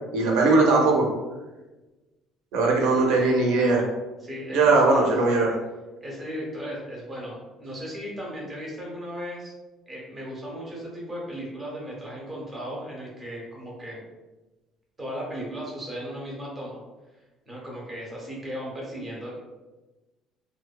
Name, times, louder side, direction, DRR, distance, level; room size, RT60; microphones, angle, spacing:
voice 1, 0.1-1.1 2.5-3.8 4.5-5.5, right 3 dB, 85° right, 0 dB, 0.6 m, -20 dB
voice 2, 4.2-5.0 6.0-9.5 9.9-14.0 15.0-16.8 17.5-19.4, equal, 15° right, -4 dB, 0.6 m, -36 dB
2.6 x 2.1 x 2.3 m, 1.1 s
cardioid pair, 175°, 0 cm